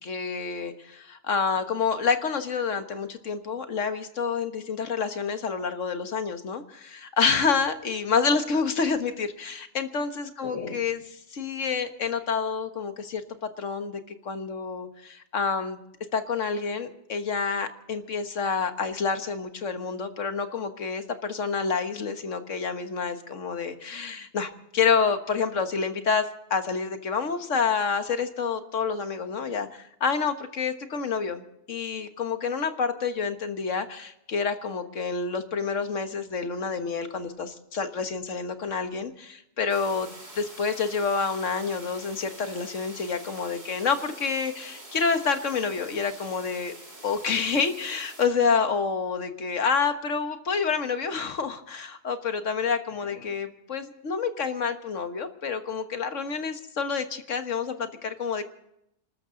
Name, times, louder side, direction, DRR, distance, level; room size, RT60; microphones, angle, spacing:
voice 1, 0.0-13.2 13.6-15.8 16.1-31.4 31.7-46.7 47.0-58.4, left 5 dB, 70° left, 8 dB, 1.7 m, -28 dB
sound 1, 39.7-48.3, right 1 dB, 35° right, 3.1 m, -46 dB
26.5 x 13.5 x 3.9 m, 0.79 s
omnidirectional pair, 1.3 m